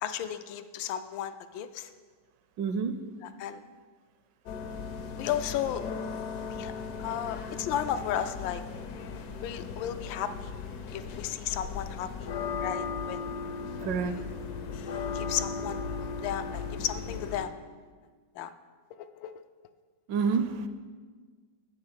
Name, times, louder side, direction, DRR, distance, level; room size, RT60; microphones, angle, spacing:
voice 1, 0.0-1.9 3.2-3.6 5.2-5.8 6.5-6.7 7.0-8.6 9.4-10.5 10.9-13.3 14.0-14.2 15.1-17.6 18.3-18.5 18.9-19.3, left 10 dB, 80° left, 10 dB, 1.3 m, -34 dB
voice 2, 2.6-2.9 13.8-14.1 20.1-20.7, right 5 dB, 75° right, 9 dB, 1.2 m, -28 dB
sound 1, 4.5-17.5, left 5 dB, 65° left, 1.1 m, -37 dB
8.0 x 7.8 x 5.6 m, 1.5 s
omnidirectional pair, 2.1 m